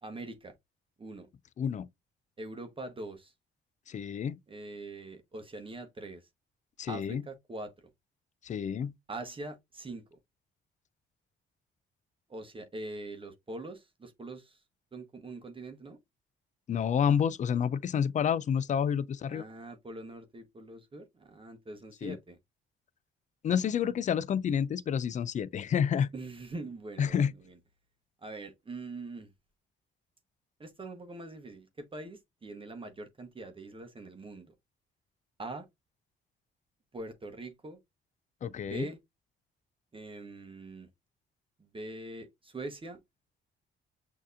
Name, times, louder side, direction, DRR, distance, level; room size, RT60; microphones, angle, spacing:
voice 1, 0.0-0.5 1.0-1.3 2.4-3.3 4.5-6.3 6.9-7.7 9.1-10.2 12.3-14.6 14.9-16.0 19.3-22.4 26.1-27.6 28.2-29.3 30.6-34.5 35.4-35.7 36.9-37.8 38.6-39.0 39.9-40.9 41.6-43.0, right 2 dB, 25° right, 1.0 m, -43 dB
voice 2, 1.6-1.9 3.9-4.4 6.8-7.2 8.4-8.9 16.7-19.4 22.0-22.2 23.4-26.1 27.0-27.3 38.4-38.9, left 8 dB, 40° left, 0.4 m, -29 dB
6.3 x 2.8 x 2.5 m
cardioid pair, 90°, 20 cm